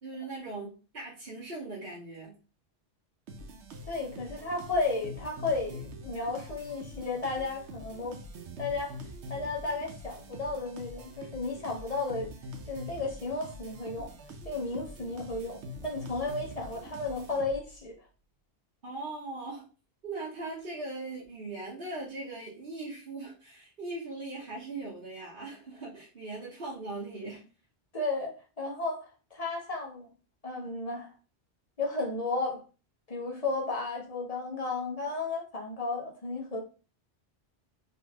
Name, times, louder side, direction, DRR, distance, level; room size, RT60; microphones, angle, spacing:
voice 1, 0.0-2.3 18.8-19.7 20.0-27.4, right 2 dB, 50° right, 1.3 m, -39 dB
sound 1, 3.3-17.8, equal, 75° right, 1.0 m, -45 dB
voice 2, 3.9-8.2 8.6-9.0 9.3-12.3 12.7-14.1 14.4-17.9 27.9-30.1 30.4-31.1 31.8-32.6 33.1-36.6, left 3 dB, 35° left, 1.1 m, -33 dB
3.9 x 3.1 x 2.8 m
omnidirectional pair, 1.1 m